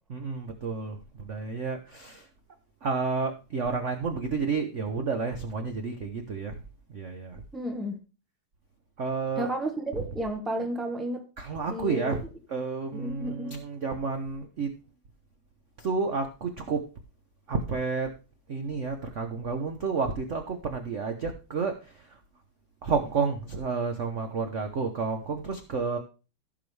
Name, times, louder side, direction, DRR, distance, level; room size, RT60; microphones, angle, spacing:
voice 1, 0.1-2.3 2.8-6.5 6.9-7.4 9.0-9.5 11.4-12.2 12.5-14.8 15.8-16.8 17.5-18.1 18.5-22.0 22.8-26.0, right 4 dB, 50° right, 0.9 m, -30 dB
voice 2, 7.5-8.0 9.4-11.2 11.7-12.2 12.9-13.6, right 1 dB, ahead, 1.1 m, -32 dB
15.5 x 6.3 x 3.3 m
omnidirectional pair, 2.4 m